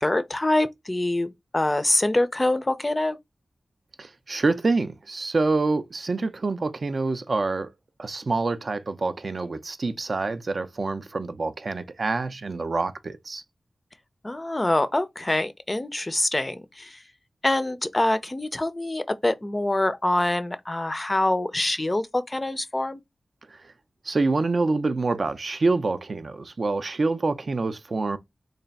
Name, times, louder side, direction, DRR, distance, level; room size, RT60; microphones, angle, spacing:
voice 1, 0.0-3.2 14.2-17.0 17.4-23.0, left 1 dB, 25° left, 0.4 m, -25 dB
voice 2, 4.0-7.7 8.0-13.4 23.5-23.6 24.0-28.2, right 3 dB, 50° right, 0.4 m, -26 dB
3.3 x 2.3 x 3.9 m
wide cardioid pair, 110°, 0 cm